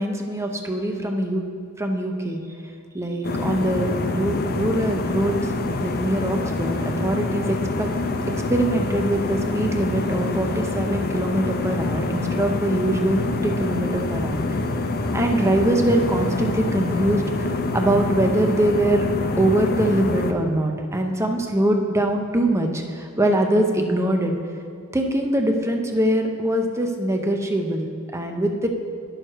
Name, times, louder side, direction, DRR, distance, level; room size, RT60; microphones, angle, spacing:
voice 1, 0.0-1.4 1.8-2.4 2.9-5.4 5.8-7.9 8.5-14.4 15.1-17.2 17.7-19.1 19.4-24.3 24.9-28.7, right 1 dB, 15° right, 3 dB, 0.6 m, -23 dB
sound 1, 3.2-20.3, left 3 dB, 45° left, 0.5 m, -26 dB
10.0 x 6.5 x 4.5 m, 2.3 s
head